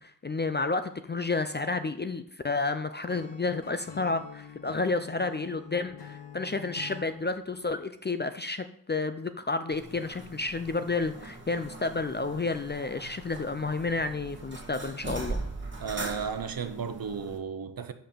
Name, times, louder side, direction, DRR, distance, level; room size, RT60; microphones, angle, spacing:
voice 1, 0.0-15.4, left 3 dB, 25° left, 0.4 m, -31 dB
Acoustic guitar / Strum, 3.1-7.2, left 8 dB, 75° left, 1.3 m, -46 dB
sound 1, 9.7-17.4, right 2 dB, 25° right, 1.6 m, -40 dB
voice 2, 15.8-17.9, right 6 dB, 55° right, 0.9 m, -34 dB
5.6 x 5.5 x 6.7 m
cardioid pair, 70°, 43 cm